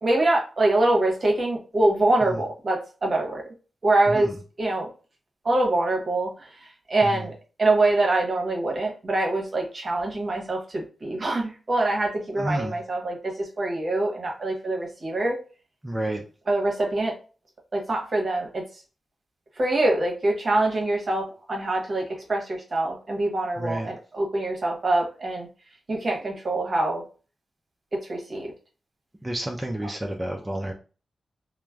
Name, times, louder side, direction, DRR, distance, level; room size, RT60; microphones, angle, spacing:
voice 1, 0.0-3.5 3.8-4.3 4.6-4.9 5.4-6.3 6.9-7.3 7.6-15.3 16.5-17.1 17.7-18.6 19.6-25.5 25.9-27.0 28.1-28.5, right 2 dB, 50° right, 0 dB, 0.9 m, -24 dB
voice 2, 12.4-12.8 15.8-16.2 23.6-23.9 29.2-30.7, right 1 dB, 15° right, 1 dB, 0.4 m, -30 dB
3.1 x 2.0 x 2.3 m, 0.35 s
cardioid pair, 55°, 0 cm